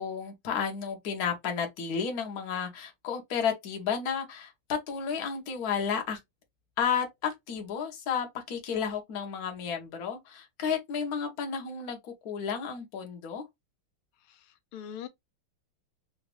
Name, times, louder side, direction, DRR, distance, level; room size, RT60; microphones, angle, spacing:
voice 1, 0.0-6.2 6.8-13.4, left 7 dB, 55° left, 1.2 m, -32 dB
voice 2, 14.3-15.1, left 9 dB, 80° left, 1.5 m, -42 dB
3.9 x 2.4 x 3.1 m
omnidirectional pair, 2.4 m